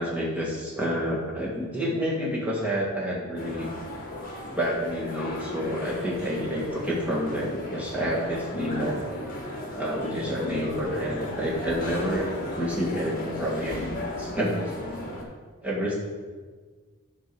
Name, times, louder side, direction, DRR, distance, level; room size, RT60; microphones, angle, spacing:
voice 1, 0.0-3.7 4.5-9.0 9.8-14.6 15.6-15.9, equal, 5° right, -6 dB, 1.8 m, -29 dB
sound 1, 3.4-15.2, left 1 dB, 40° left, 1.4 m, -36 dB
10.5 x 3.8 x 6.2 m, 1.5 s
head